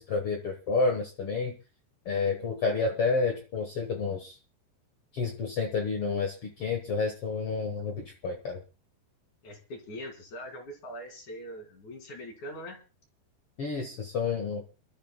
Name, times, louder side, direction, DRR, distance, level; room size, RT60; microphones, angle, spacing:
voice 1, 0.0-1.5 2.0-4.4 5.1-8.6 13.6-14.6, left 4 dB, 80° left, 3 dB, 1.2 m, -30 dB
voice 2, 9.4-12.8, equal, 50° left, 4 dB, 3.4 m, -42 dB
27.5 x 12.5 x 2.2 m, 0.34 s
omnidirectional pair, 4.8 m